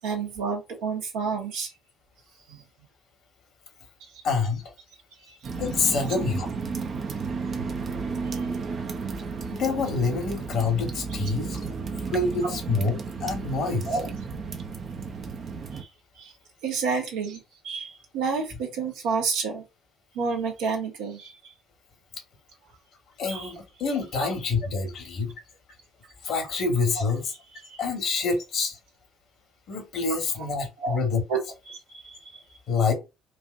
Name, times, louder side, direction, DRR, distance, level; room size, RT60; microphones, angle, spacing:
voice 1, 0.0-1.7 2.5-2.6 5.3-5.4 8.2-8.4 13.9-14.1 15.7-15.9 16.2-16.3 16.6-19.6 20.1-21.5 23.3-23.5 24.2-24.3 27.7-27.8 30.8-31.0 31.3-31.4 31.7-32.4, right 5 dB, 70° right, 1.1 m, -30 dB
voice 2, 4.2-4.6 5.6-6.5 9.5-11.6 12.1-13.9 23.2-25.3 26.2-27.3 27.8-28.8 29.7-31.2 32.7-32.9, left 4 dB, 55° left, 1.5 m, -26 dB
sound 1, 5.4-15.8, right 5 dB, 45° right, 0.7 m, -33 dB
4.7 x 2.5 x 2.6 m
figure-of-eight pair, 50°, 0 cm